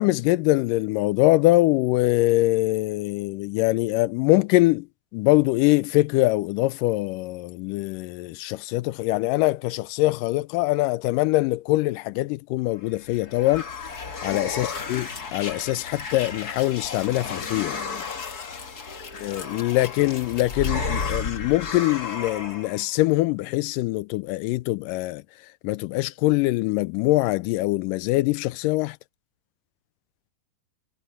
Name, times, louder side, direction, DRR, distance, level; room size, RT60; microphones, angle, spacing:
voice 1, 0.0-4.9 5.1-13.7 14.2-17.8 19.2-25.2 25.6-29.0, left 19 dB, 85° left, 1.9 m, -23 dB
sound 1, 12.8-22.8, left 5 dB, 45° left, 1.3 m, -33 dB
omnidirectional pair, 4.3 m